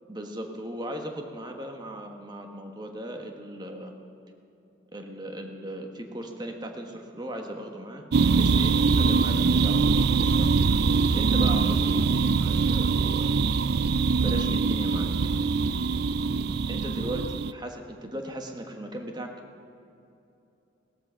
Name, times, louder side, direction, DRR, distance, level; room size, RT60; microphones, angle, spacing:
voice 1, 0.1-3.9 4.9-10.5 11.1-13.3 14.2-15.1 16.7-19.3, right 1 dB, 20° right, 3 dB, 1.4 m, -37 dB
sound 1, 8.1-17.5, right 4 dB, 55° right, 0.4 m, -23 dB
18.0 x 13.5 x 5.7 m, 2.8 s
head